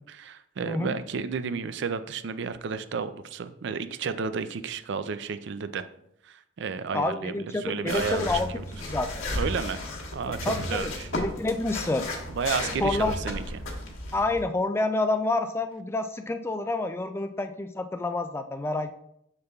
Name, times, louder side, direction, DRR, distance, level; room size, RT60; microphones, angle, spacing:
voice 1, 0.1-5.9 6.2-8.3 9.3-9.8 10.1-11.1 12.3-13.6, right 5 dB, 65° right, 12 dB, 0.4 m, -32 dB
voice 2, 6.9-8.5 8.9-9.2 10.2-10.9 11.2-12.2 12.8-13.1 14.1-18.9, left 2 dB, 15° left, 8 dB, 0.3 m, -28 dB
sound 1, 7.9-14.4, left 1 dB, 90° left, 1.4 m, -34 dB
6.9 x 6.6 x 2.3 m, 0.75 s
head